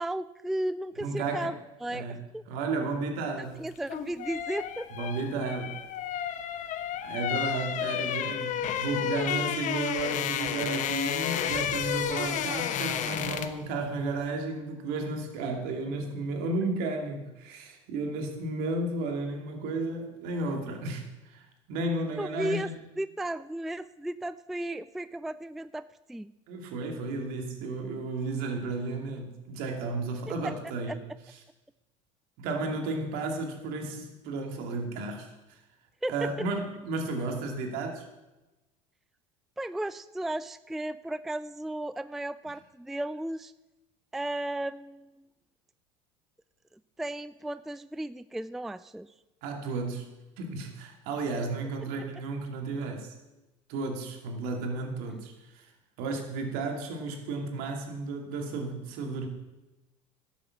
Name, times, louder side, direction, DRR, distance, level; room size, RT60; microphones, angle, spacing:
voice 1, 0.0-2.1 2.3-2.4 3.6-5.1 22.2-22.7 23.0-26.3 30.3-30.5 30.9-31.0 36.0-36.3 39.6-43.5 44.1-45.1 47.0-49.1 55.1-55.2, right 1 dB, ahead, 15 dB, 0.3 m, -34 dB
voice 2, 1.0-1.5 1.9-2.2 2.5-3.6 4.9-5.8 7.0-22.7 26.5-31.0 32.4-35.6 36.1-38.0 49.4-50.1 50.4-53.1 53.7-55.7 56.0-59.3, right 3 dB, 65° right, 3 dB, 2.7 m, -33 dB
sound 1, 3.7-13.7 13.9-14.1, left 10 dB, 50° left, 1.1 m, -32 dB
11.0 x 7.4 x 7.3 m, 1.0 s
hypercardioid pair, 90°, 17 cm